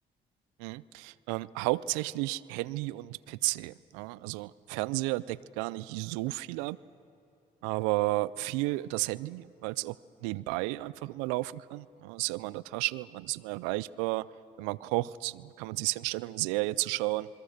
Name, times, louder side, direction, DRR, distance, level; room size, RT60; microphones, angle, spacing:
voice 1, 0.6-6.8 7.6-10.0 10.2-14.3 14.6-17.3, right 20 dB, 90° right, 20 dB, 0.4 m, -32 dB
27.5 x 22.0 x 6.5 m, 2.9 s
supercardioid pair, 60°, 19 cm